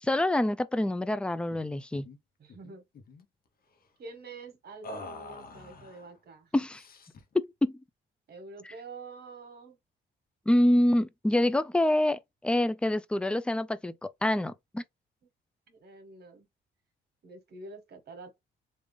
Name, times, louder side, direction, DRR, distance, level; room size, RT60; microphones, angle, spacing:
voice 1, 0.0-2.1 6.5-6.8 7.3-7.8 10.5-14.8, left 1 dB, 5° left, 0.3 m, -26 dB
sound 1, 1.5-1.7 1.9-2.2 2.5-3.3 4.8-6.1 6.7-7.3, left 2 dB, 50° left, 0.8 m, -46 dB
voice 2, 2.4-2.8 4.0-6.5 8.3-9.8 15.7-16.5 17.2-18.4, right 3 dB, 55° right, 1.4 m, -47 dB
3.5 x 2.5 x 3.2 m
cardioid pair, 90°, 20 cm